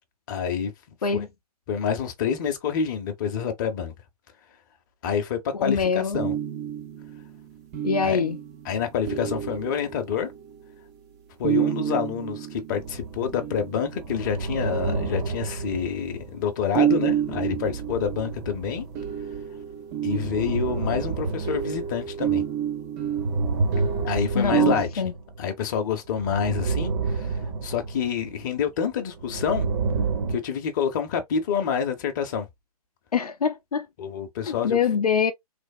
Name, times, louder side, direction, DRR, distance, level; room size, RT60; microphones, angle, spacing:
voice 1, 0.3-0.7 1.1-1.3 1.7-3.9 5.0-6.3 8.0-8.2 8.6-10.3 11.4-18.9 20.0-22.4 24.0-25.0 25.4-29.7 30.3-32.5 34.0-34.8, left 7 dB, 30° left, 0.7 m, -27 dB
voice 2, 5.5-6.3 7.8-8.4 24.3-25.1 33.1-33.9 34.5-35.3, left 6 dB, 75° left, 0.5 m, -24 dB
sound 1, 6.1-10.7 11.4-14.1 14.6-16.1 16.7-24.8, right 10 dB, 10° right, 0.3 m, -29 dB
sound 2, 12.7-13.5 13.8-16.6 17.0-19.6 20.0-22.6 23.0-25.5 26.1-28.6 29.1-30.4, right 4 dB, 35° right, 0.7 m, -30 dB
3.3 x 2.0 x 2.4 m
figure-of-eight pair, 135°, 20 cm